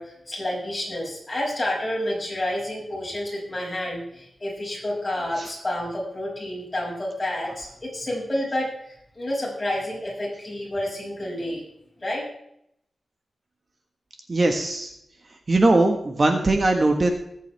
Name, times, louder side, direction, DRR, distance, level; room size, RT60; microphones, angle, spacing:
voice 1, 0.0-11.6 12.0-12.2, left 1 dB, 20° left, -4 dB, 6.0 m, -29 dB
voice 2, 14.3-14.9 15.5-17.1, right 2 dB, 35° right, 4 dB, 1.4 m, -20 dB
21.0 x 8.3 x 3.4 m, 0.75 s
wide cardioid pair, 115°, 0 cm